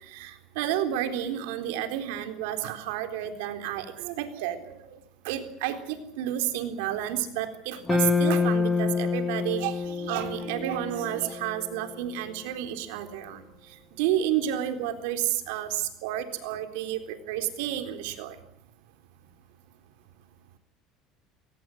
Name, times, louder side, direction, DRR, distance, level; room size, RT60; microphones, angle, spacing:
voice 1, 0.1-4.8 5.2-13.4 14.0-18.3, right 11 dB, 90° right, 8 dB, 3.9 m, -31 dB
sound 1, 7.9-12.2, left 4 dB, 10° left, 2.8 m, -27 dB
23.0 x 18.0 x 8.0 m, 0.76 s
cardioid pair, 140°, 0 cm